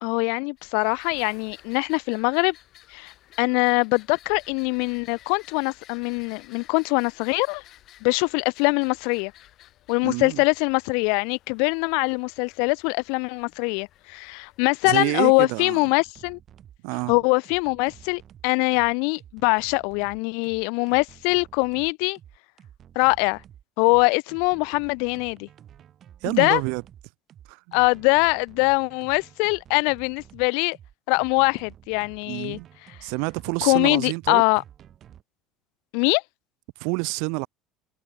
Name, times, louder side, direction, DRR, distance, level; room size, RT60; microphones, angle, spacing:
voice 1, 0.0-2.5 2.9-3.1 3.4-7.6 8.0-9.3 9.9-16.4 17.1-22.2 22.9-23.4 23.8-25.5 26.2-26.6 27.7-30.8 31.1-32.6 32.9-33.0 33.6-34.6 35.9-36.2, left 38 dB, 75° left, 0.9 m, -23 dB
sound 1, 0.6-14.9, left 14 dB, 45° left, 5.5 m, -54 dB
voice 2, 10.0-10.4 14.8-15.8 16.8-17.1 26.2-26.8 27.5-27.6 32.3-32.7 33.0-34.4 36.8-37.5, right 36 dB, 75° right, 0.5 m, -28 dB
sound 2, 16.0-35.2, right 10 dB, 35° right, 7.5 m, -50 dB
cardioid pair, 145°, 0 cm